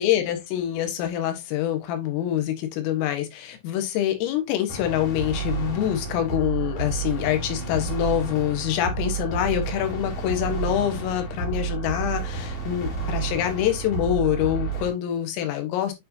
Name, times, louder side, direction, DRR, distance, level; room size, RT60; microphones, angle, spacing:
voice 1, 0.0-15.9, left 11 dB, 80° left, 3.8 m, -25 dB
sound 1, 4.7-14.9, right 5 dB, 50° left, 2.9 m, -30 dB
8.3 x 4.6 x 2.7 m
omnidirectional pair, 5.9 m